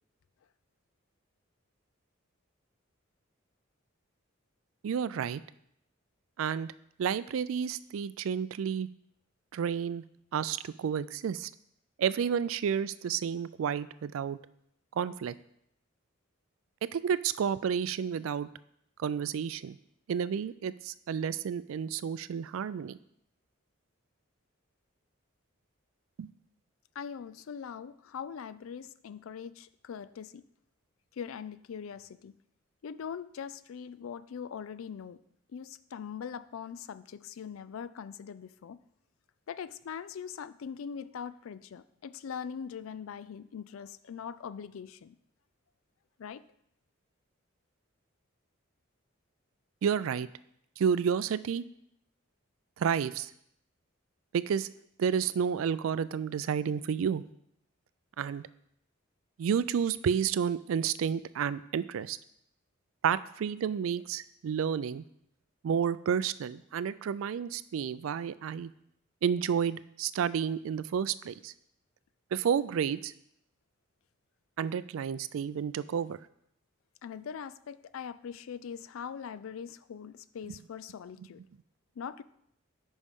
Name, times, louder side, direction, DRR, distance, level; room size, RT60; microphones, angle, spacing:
voice 1, 4.8-5.4 6.4-6.7 7.0-8.9 9.5-10.0 10.3-11.5 12.0-14.4 15.0-15.3 16.8-18.5 19.0-19.8 20.1-22.9 26.2-26.3 49.8-50.3 50.8-51.6 52.8-53.3 54.3-54.7 55.0-57.2 58.2-58.4 59.4-62.2 63.0-65.0 65.6-68.7 69.2-71.5 72.3-73.1 74.6-76.2 80.5-80.6, right 7 dB, 75° right, 16 dB, 0.3 m, -30 dB
voice 2, 27.0-30.4 31.1-32.3 32.8-35.2 35.5-38.8 39.5-45.2 46.2-46.4 77.0-81.4 82.0-82.2, left 7 dB, 80° left, 15 dB, 0.4 m, -42 dB
9.8 x 5.3 x 3.6 m, 0.74 s
head